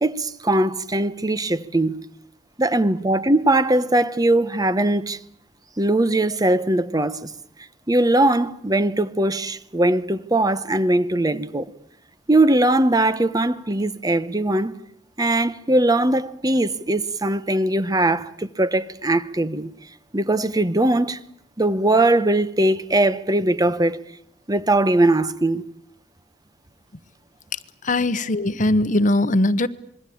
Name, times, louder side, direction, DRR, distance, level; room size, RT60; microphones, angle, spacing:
voice 1, 0.0-1.9 2.6-5.2 5.8-7.3 7.9-11.6 12.3-14.7 15.2-19.7 20.1-21.2 21.6-24.0 24.5-25.6, right 1 dB, 20° right, 1.1 m, -20 dB
voice 2, 27.5-29.7, left 1 dB, 45° left, 1.1 m, -20 dB
26.5 x 22.5 x 8.6 m
head